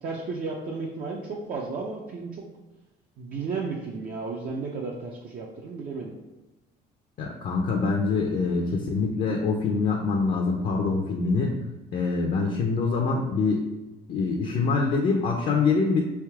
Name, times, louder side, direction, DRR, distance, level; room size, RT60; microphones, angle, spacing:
voice 1, 0.0-2.4 3.2-6.1, right 4 dB, 55° right, -2 dB, 0.6 m, -33 dB
voice 2, 7.2-11.5 11.9-13.6 14.1-16.0, left 4 dB, 55° left, 1 dB, 0.6 m, -24 dB
3.5 x 2.7 x 4.6 m, 1.1 s
cardioid pair, 110°, 17 cm